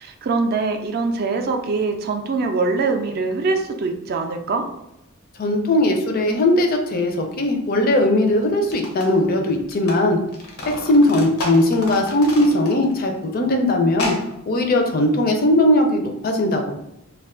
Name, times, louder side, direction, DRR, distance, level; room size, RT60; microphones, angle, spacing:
voice 1, 0.0-4.6, right 3 dB, 45° right, 4 dB, 0.3 m, -23 dB
voice 2, 5.4-10.2 10.7-14.2 14.5-16.8, left 1 dB, 40° left, 3 dB, 0.4 m, -19 dB
sound 1, 7.9-8.0 8.5-10.0 10.2-13.0 13.2-13.3 13.9-14.3, left 1 dB, 85° left, 0.7 m, -31 dB
2.4 x 2.3 x 3.5 m, 0.84 s
head